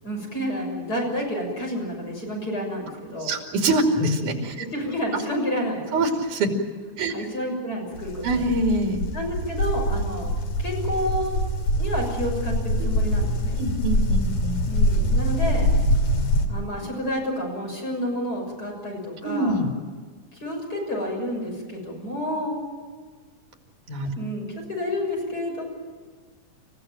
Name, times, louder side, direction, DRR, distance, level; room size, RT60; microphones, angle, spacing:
voice 1, 0.0-3.3 4.7-6.0 7.1-8.4 9.1-10.3 10.6-11.4 11.8-13.6 14.7-15.7 16.5-19.6 20.3-22.6 24.1-25.6, equal, 30° left, -1 dB, 7.0 m, -29 dB
voice 2, 3.2-4.6 5.1-5.2 5.9-6.5 7.0-7.1 8.2-9.0 12.8-12.9 13.6-14.6 19.2-19.7 23.9-24.1, right 2 dB, 80° right, 3 dB, 4.2 m, -24 dB
sound 1, 7.9-16.5, equal, 70° left, 3.9 m, -24 dB
28.5 x 16.0 x 9.0 m, 1.5 s
omnidirectional pair, 3.6 m